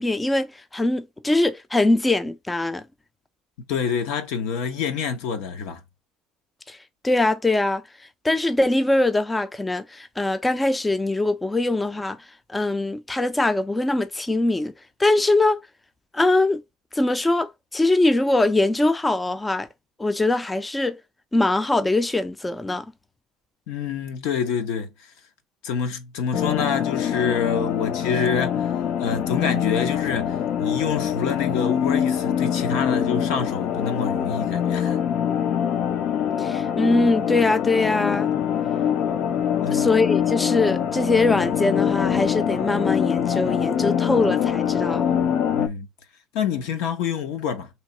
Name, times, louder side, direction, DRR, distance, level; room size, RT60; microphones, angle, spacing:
voice 1, 0.0-2.8 6.7-6.8 7.0-7.8 8.2-12.2 12.5-14.7 15.0-15.6 16.1-16.6 16.9-19.7 20.0-21.0 21.3-22.9 36.4-38.3 39.7-45.1, left 2 dB, 10° left, 0.4 m, -22 dB
voice 2, 3.7-5.8 23.7-24.9 25.6-28.7 29.0-35.0 39.6-39.9 45.5-45.9 46.3-47.7, left 6 dB, 80° left, 0.9 m, -27 dB
sound 1, 26.3-45.7, left 9 dB, 60° left, 0.6 m, -24 dB
3.2 x 2.8 x 4.2 m
cardioid pair, 125°, 0 cm